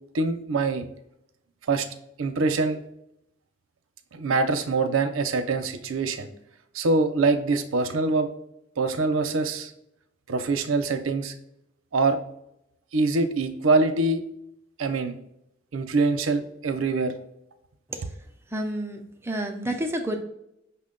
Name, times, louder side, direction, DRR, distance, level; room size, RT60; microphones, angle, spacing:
voice 1, 0.1-0.9 1.7-1.9 2.2-2.8 4.1-6.3 6.7-8.3 8.8-9.7 10.3-11.3 11.9-12.2 12.9-14.2 14.8-15.1 15.7-17.1, right 3 dB, 90° right, 9 dB, 0.5 m, -24 dB
voice 2, 18.5-20.2, right 1 dB, 10° right, 3 dB, 0.4 m, -30 dB
5.6 x 2.2 x 3.7 m, 0.80 s
head